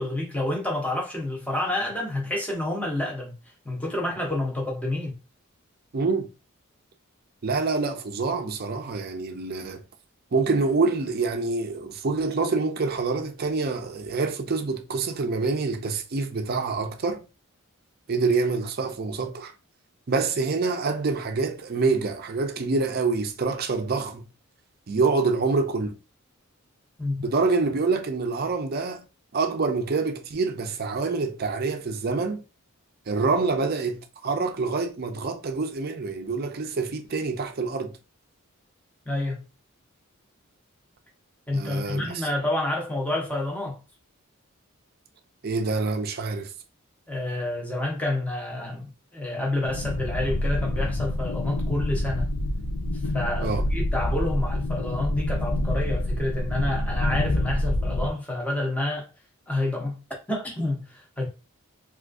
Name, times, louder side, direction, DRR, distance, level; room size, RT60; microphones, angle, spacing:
voice 1, 0.0-3.3 3.6-5.2 27.0-27.3 39.1-39.4 41.5-43.8 47.1-52.3 53.1-59.1 59.5-60.0 60.3-61.3, left 1 dB, 5° left, 0.8 m, -29 dB
voice 2, 5.9-6.3 7.4-9.8 10.3-17.2 18.1-19.5 20.1-24.3 24.9-26.0 27.2-29.1 29.3-32.4 33.1-38.0 41.5-42.3 45.4-46.5 53.4-53.7, right 4 dB, 45° right, 0.5 m, -26 dB
sound 1, 49.6-58.1, left 1 dB, 75° left, 0.4 m, -27 dB
3.5 x 2.4 x 2.5 m
head